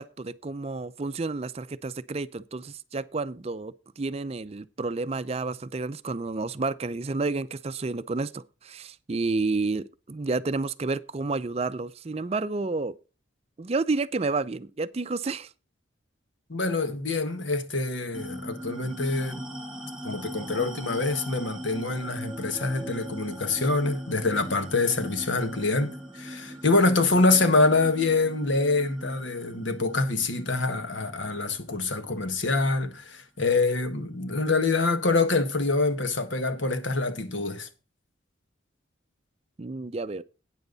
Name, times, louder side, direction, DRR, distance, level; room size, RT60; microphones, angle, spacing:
voice 1, 0.0-12.9 13.6-15.5 39.6-40.2, right 3 dB, 30° right, 0.4 m, -30 dB
voice 2, 16.5-19.5 20.0-37.7, left 3 dB, 75° left, 1.6 m, -25 dB
sound 1, 18.1-33.0, equal, 5° right, 3.1 m, -41 dB
12.5 x 9.1 x 4.0 m
head